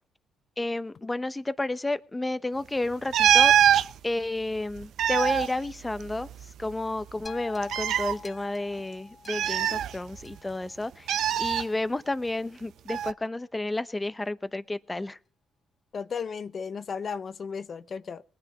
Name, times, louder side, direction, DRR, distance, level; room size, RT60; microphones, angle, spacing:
voice 1, 0.6-3.5 4.0-6.3 6.6-11.1 11.4-15.2, left 2 dB, 15° left, 0.8 m, -31 dB
sound 1, 3.1-3.9 4.8-6.4 6.7-6.8 7.6-8.1 9.3-10.3 11.1-11.6 12.9-13.1, right 10 dB, 75° right, 0.7 m, -23 dB
sound 2, 7.3-11.6 12.3-12.4, left 4 dB, 30° left, 2.1 m, -46 dB
voice 2, 15.9-18.2, left 6 dB, 45° left, 0.8 m, -34 dB
19.5 x 10.0 x 5.2 m
cardioid pair, 90°, 0 cm